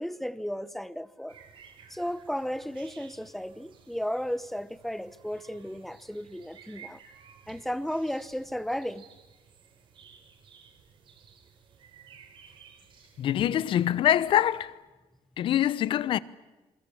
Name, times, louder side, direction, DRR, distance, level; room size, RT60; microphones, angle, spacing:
voice 1, 0.0-1.4 1.9-7.0 7.5-9.0, equal, ahead, 0.9 m, -34 dB
sound 1, 1.3-14.7, right 7 dB, 55° right, 3.9 m, -55 dB
voice 2, 13.2-14.8 15.4-16.2, left 11 dB, 60° left, 0.8 m, -24 dB
28.5 x 23.0 x 7.2 m
cardioid pair, 115°, 10 cm